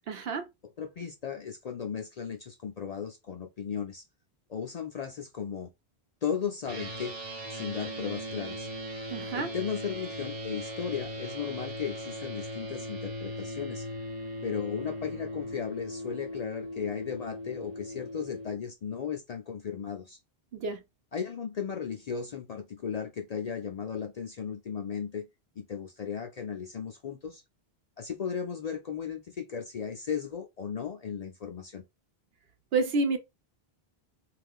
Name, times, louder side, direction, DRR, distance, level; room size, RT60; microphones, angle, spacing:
voice 1, 0.1-0.4 9.1-9.5 20.5-20.8 32.7-33.2, right 3 dB, 75° right, 0.9 m, -29 dB
voice 2, 0.8-4.0 4.5-5.7 6.2-7.2 7.5-8.7 9.3-13.9 14.4-20.2 21.1-25.3 25.6-27.4 28.0-31.8, left 7 dB, 55° left, 0.5 m, -36 dB
sound 1, 6.6-18.5, equal, 45° right, 0.7 m, -39 dB
2.4 x 2.3 x 3.5 m
omnidirectional pair, 1.1 m